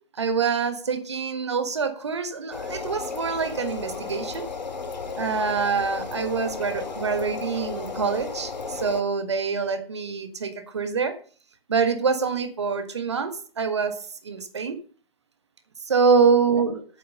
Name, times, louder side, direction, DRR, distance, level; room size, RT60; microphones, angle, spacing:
voice 1, 0.2-4.5 5.2-11.2 11.7-14.0 14.2-14.8 15.9-16.8, right 5 dB, 30° right, 9 dB, 1.6 m, -25 dB
sound 1, 2.5-9.0, left 4 dB, 45° left, 2.0 m, -34 dB
10.5 x 9.0 x 5.3 m, 0.40 s
figure-of-eight pair, 160°, 29 cm